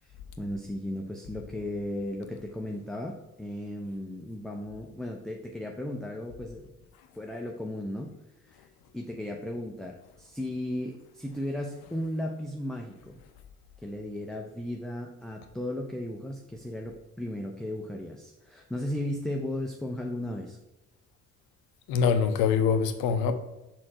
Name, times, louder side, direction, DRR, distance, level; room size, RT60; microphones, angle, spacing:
voice 1, 0.4-6.7 7.1-8.1 8.5-8.7 8.9-13.2 13.8-20.6, left 1 dB, ahead, 0.6 m, -35 dB
voice 2, 21.9-23.3, left 6 dB, 55° left, 0.8 m, -24 dB
6.1 x 4.3 x 4.3 m
figure-of-eight pair, 45°, 44 cm